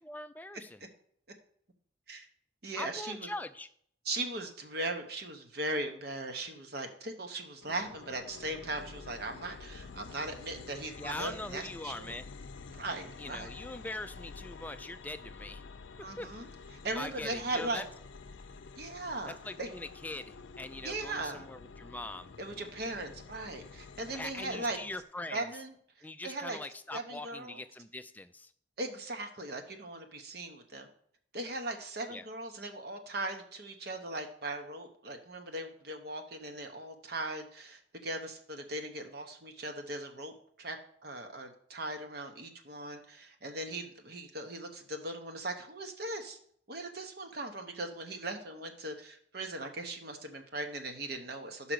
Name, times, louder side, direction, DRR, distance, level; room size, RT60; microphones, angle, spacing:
voice 1, 0.1-0.8 2.8-3.7 11.0-12.3 13.2-15.6 16.0-16.3 16.9-17.8 19.4-22.3 24.1-25.5 26.0-28.5 32.1-32.2, left 2 dB, 10° left, 10 dB, 0.3 m, -42 dB
voice 2, 2.6-3.3 4.0-12.2 12.7-13.5 16.0-16.5 16.8-17.8 18.8-19.7 20.8-21.5 22.4-24.8 25.3-25.7 26.2-26.6 26.9-27.6 28.8-30.9 31.3-40.8 41.0-46.4 46.7-51.7, right 2 dB, 55° right, 5 dB, 0.9 m, -39 dB
sound 1, 7.6-25.0, left 4 dB, 80° left, 0.5 m, -49 dB
5.7 x 5.1 x 6.1 m, 0.63 s
head